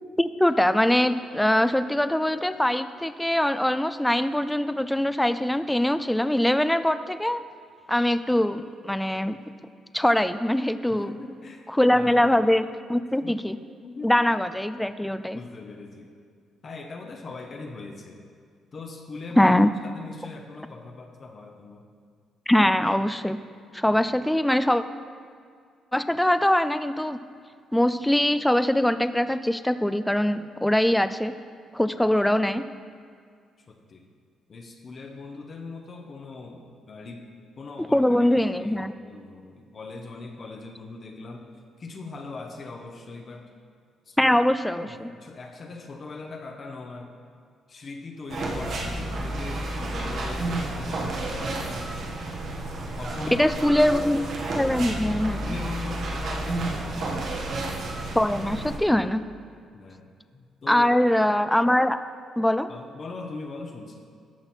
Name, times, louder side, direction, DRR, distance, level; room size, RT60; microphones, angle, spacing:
voice 1, 0.2-7.4 7.9-9.4 9.9-11.1 11.7-13.6 14.0-15.4 19.4-19.7 22.5-23.4 23.7-24.8 25.9-27.2 27.7-31.3 31.7-32.6 37.9-38.9 44.2-45.1 53.3-55.6 58.2-59.2 60.7-62.0 62.4-62.7, left 1 dB, 5° left, 12 dB, 0.4 m, -22 dB
voice 2, 10.9-12.3 12.9-13.3 13.8-14.1 15.3-16.1 16.6-18.2 18.7-19.5 19.8-21.9 23.9-24.0 32.0-32.2 33.6-34.1 34.5-37.3 37.6-38.0 38.6-41.5 41.8-43.5 44.1-44.4 44.7-47.1 47.7-51.9 53.0-53.9 55.4-57.3 59.7-61.0 62.7-64.0, left 3 dB, 45° left, 3 dB, 1.0 m, -40 dB
sound 1, 48.3-58.8, right 2 dB, 65° right, 1.5 m, -31 dB
13.5 x 5.8 x 4.4 m, 2.1 s
cardioid pair, 90°, 0 cm